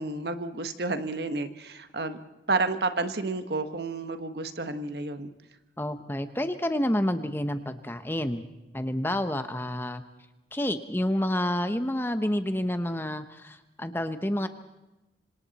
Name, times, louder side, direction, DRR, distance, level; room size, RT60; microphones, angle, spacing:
voice 1, 0.0-2.2 2.5-5.3, right 3 dB, 65° right, 9 dB, 1.3 m, -30 dB
voice 2, 5.8-8.4 8.7-10.0 10.5-14.5, left 1 dB, 10° left, 9 dB, 0.9 m, -29 dB
26.0 x 26.0 x 4.2 m, 0.99 s
head